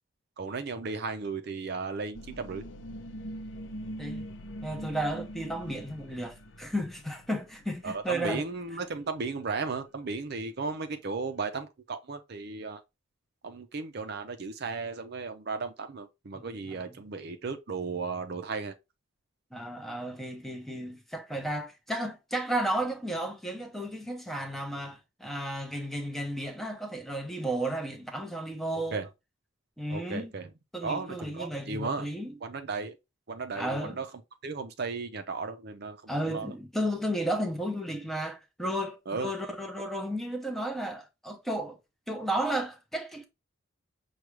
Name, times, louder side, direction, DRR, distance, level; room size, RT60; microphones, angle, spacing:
voice 1, 0.4-2.6 7.8-12.8 13.4-18.7 28.9-29.1 29.9-30.5 30.8-32.1 32.4-32.9 33.3-34.1 34.4-36.5 39.1-39.3, right 4 dB, 50° right, 0.5 m, -35 dB
sound 1, 2.1-8.9 9.2-9.3, equal, 60° left, 0.6 m, -43 dB
voice 2, 4.6-8.4 16.3-17.1 19.5-29.0 29.8-30.3 30.7-32.4 33.5-34.0 36.1-41.8 42.1-43.2, right 1 dB, ahead, 0.7 m, -33 dB
6.0 x 2.3 x 3.1 m
head